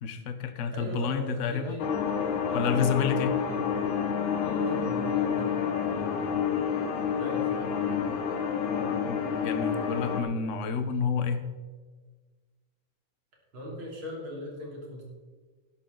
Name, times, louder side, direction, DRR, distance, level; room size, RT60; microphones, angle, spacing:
voice 1, 0.0-1.8 2.5-3.3 9.1-11.4, left 6 dB, 50° left, 9 dB, 0.9 m, -29 dB
voice 2, 0.7-3.7 4.4-8.2 8.7-8.9 13.5-15.0, equal, 65° right, -2 dB, 3.9 m, -40 dB
sound 1, 1.8-10.2, left 7 dB, 70° left, 1.7 m, -29 dB
12.0 x 12.0 x 3.9 m, 1.4 s
omnidirectional pair, 2.4 m